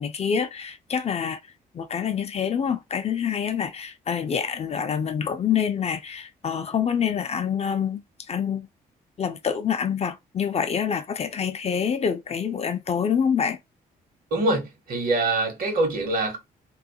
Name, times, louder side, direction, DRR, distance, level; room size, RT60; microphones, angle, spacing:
voice 1, 0.0-1.4 1.7-8.0 8.3-8.7 9.2-13.6, left 7 dB, 40° left, 0.4 m, -26 dB
voice 2, 14.3-16.4, right 2 dB, 60° right, 1.0 m, -24 dB
2.3 x 2.0 x 2.6 m
cardioid pair, 95°, 17 cm